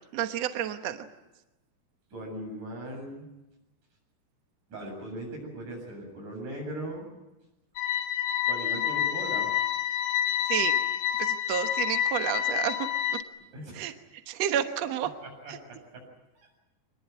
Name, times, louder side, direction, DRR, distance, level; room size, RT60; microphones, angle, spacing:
voice 1, 0.1-1.1 10.5-10.8 11.2-12.9 13.7-13.9 14.3-15.1 15.5-15.6, right 10 dB, 75° right, 7 dB, 1.5 m, -30 dB
voice 2, 2.1-3.3 4.7-7.1 8.5-9.5 13.5-13.9 15.2-16.0 16.4-16.5, right 1 dB, 45° right, 1 dB, 9.2 m, -39 dB
sound 1, 7.8-13.2, left 10 dB, 70° left, 2.6 m, -28 dB
24.5 x 21.0 x 9.4 m, 1.0 s
omnidirectional pair, 4.9 m